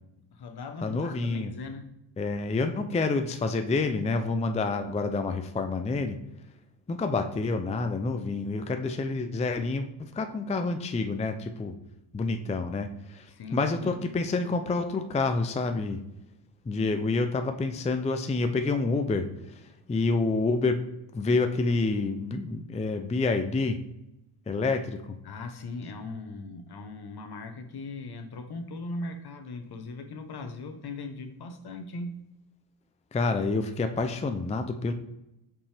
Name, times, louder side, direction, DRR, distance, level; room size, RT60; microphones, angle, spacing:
voice 1, 0.3-1.9 13.3-13.9 25.2-32.1, left 3 dB, 55° left, 6 dB, 1.1 m, -39 dB
voice 2, 0.8-1.5 2.2-6.2 6.9-11.7 12.1-16.0 16.6-20.8 21.1-23.8 24.5-25.0 33.1-34.9, left 3 dB, 15° left, 7 dB, 0.5 m, -28 dB
5.4 x 5.4 x 3.4 m, 0.90 s
cardioid pair, 75°, 47 cm